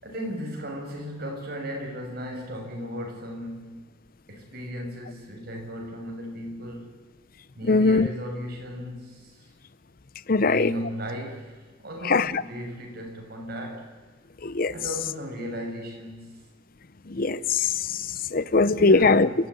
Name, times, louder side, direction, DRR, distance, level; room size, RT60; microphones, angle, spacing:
voice 1, 0.0-3.8 4.3-6.9 7.5-9.5 10.3-13.9 14.7-16.3 18.5-19.4, equal, 50° right, 6.7 m, -36 dB
voice 2, 7.7-8.1 10.3-10.7 12.1-12.4 14.4-14.7 17.1-19.3, left 3 dB, 50° left, 0.7 m, -21 dB
30.0 x 15.5 x 9.7 m
head